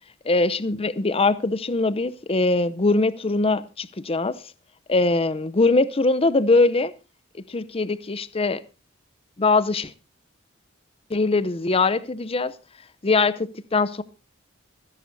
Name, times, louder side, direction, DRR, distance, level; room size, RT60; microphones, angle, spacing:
voice 1, 0.2-4.3 4.9-6.9 7.5-8.6 9.4-9.9 11.1-12.5 13.0-14.0, left 3 dB, 30° left, 0.6 m, -22 dB
26.5 x 11.0 x 2.7 m
head